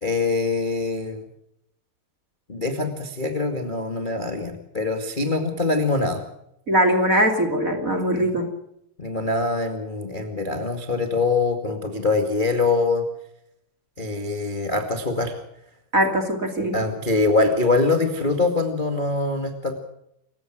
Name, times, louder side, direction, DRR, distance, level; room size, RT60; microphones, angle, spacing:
voice 1, 0.0-1.2 2.5-6.2 8.1-8.3 9.0-13.0 14.0-15.4 16.7-19.7, left 3 dB, 25° left, 5 dB, 1.1 m, -23 dB
voice 2, 6.7-8.5 15.9-16.8, equal, 25° right, 7 dB, 2.3 m, -21 dB
28.0 x 16.0 x 6.2 m, 0.76 s
omnidirectional pair, 4.8 m